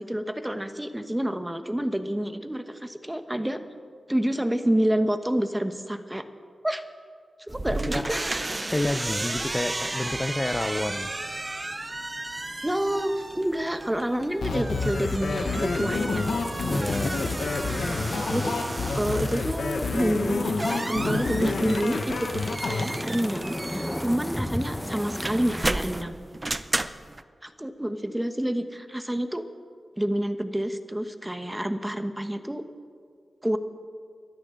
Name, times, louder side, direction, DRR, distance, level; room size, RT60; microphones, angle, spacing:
voice 1, 0.0-3.6 4.1-6.2 6.6-6.8 7.5-8.2 12.6-16.4 17.6-17.8 18.3-18.5 18.9-26.2 27.4-29.4 30.0-32.6 33.4-33.6, right 1 dB, 10° right, 9 dB, 1.1 m, -28 dB
sound 1, 7.5-27.2, right 2 dB, 30° right, 0.6 m, -34 dB
voice 2, 7.7-8.1 8.7-11.1 16.0-17.2, left 1 dB, 25° left, 10 dB, 0.6 m, -30 dB
sound 2, 14.4-22.8, left 4 dB, 80° left, 1.2 m, -28 dB
sound 3, 14.8-26.0, left 1 dB, 10° left, 1.0 m, -35 dB
23.0 x 13.0 x 3.9 m, 2.1 s
cardioid pair, 45°, 0 cm